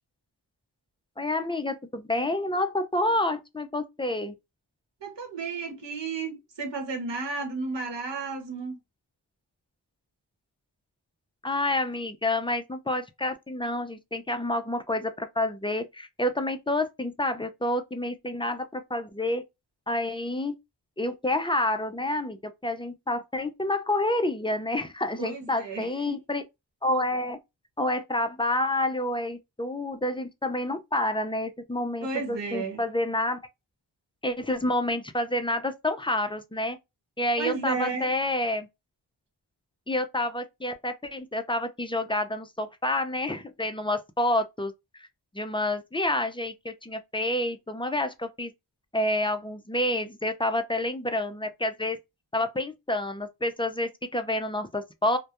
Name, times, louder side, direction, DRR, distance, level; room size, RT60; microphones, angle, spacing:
voice 1, 1.2-4.3 11.4-19.4 19.9-20.5 21.0-26.4 26.8-27.4 27.8-33.4 34.2-36.8 37.2-38.7 39.9-45.1 45.3-48.5 48.9-52.0 52.3-55.2, left 1 dB, 15° left, 0.4 m, -28 dB
voice 2, 5.0-8.8 25.2-26.1 32.0-32.8 37.4-38.1, right 4 dB, 75° right, 0.9 m, -33 dB
2.2 x 2.2 x 2.8 m
wide cardioid pair, 55°, 43 cm